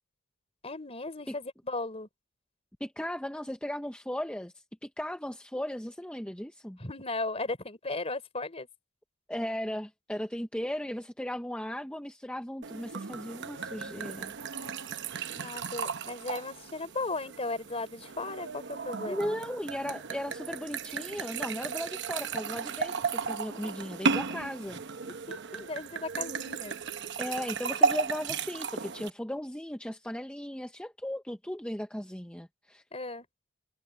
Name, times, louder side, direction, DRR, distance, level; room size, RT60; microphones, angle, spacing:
voice 1, 0.6-2.1 6.8-8.7 15.3-19.4 25.0-26.8 32.9-33.3, left 2 dB, 30° left, 3.9 m, -36 dB
voice 2, 2.8-6.8 9.3-14.3 19.1-24.8 27.2-32.8, equal, 5° left, 0.8 m, -36 dB
sound 1, 12.6-29.1, right 5 dB, 55° right, 0.9 m, -34 dB
head